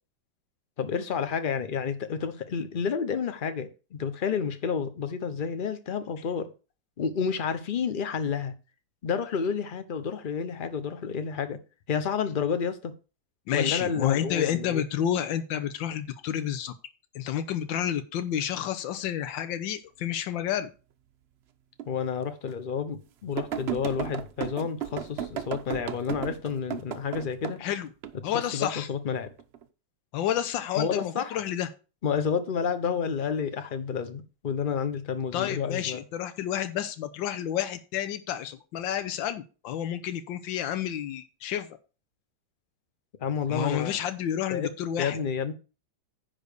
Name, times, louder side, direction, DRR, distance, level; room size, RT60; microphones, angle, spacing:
voice 1, 0.8-6.5 7.0-8.6 9.0-11.6 11.9-12.9 13.5-14.8 21.9-27.6 28.3-29.3 30.8-31.4 32.0-36.0 43.2-44.0 44.5-44.7 45.0-45.5, left 6 dB, 40° left, 0.7 m, -30 dB
voice 2, 13.5-16.7 17.1-20.7 27.6-27.9 28.2-28.9 30.1-31.7 35.3-41.7 43.5-45.2, left 10 dB, 85° left, 1.5 m, -30 dB
sound 1, 21.8-21.9 22.5-22.6 23.4-27.6 28.0-28.7 29.3-29.6, right 9 dB, 85° right, 0.5 m, -34 dB
10.0 x 4.0 x 6.6 m
omnidirectional pair, 2.0 m